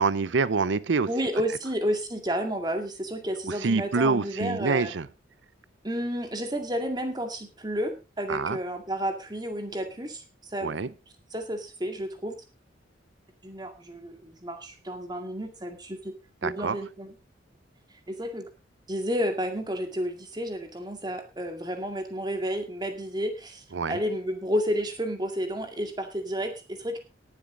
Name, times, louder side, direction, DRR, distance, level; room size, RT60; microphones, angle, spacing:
voice 1, 0.0-1.1 3.5-5.1 8.3-8.6 10.6-10.9 16.4-16.8 23.7-24.0, right 4 dB, 80° right, 18 dB, 0.6 m, -26 dB
voice 2, 1.1-4.9 5.8-10.2 10.5-10.9 11.3-12.3 13.4-16.2 16.4-17.1 18.1-18.5 18.9-27.0, equal, 20° right, 5 dB, 2.1 m, -31 dB
19.0 x 7.4 x 3.8 m, 0.29 s
head